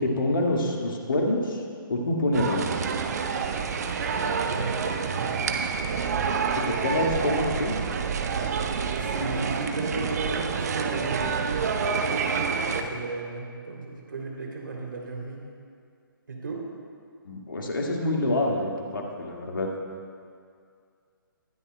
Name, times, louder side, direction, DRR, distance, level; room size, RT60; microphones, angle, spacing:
voice 1, 0.0-1.6 1.9-2.8 6.5-7.7 17.2-19.7, left 1 dB, 65° left, 0 dB, 1.9 m, -26 dB
sound 1, 2.3-12.8, right 5 dB, 45° right, 0.8 m, -28 dB
voice 2, 4.1-5.5 7.2-7.3 8.9-15.5 16.3-16.6, right 3 dB, 60° right, -1 dB, 2.9 m, -35 dB
20.0 x 12.5 x 2.2 m, 2.3 s
figure-of-eight pair, 135°, 12 cm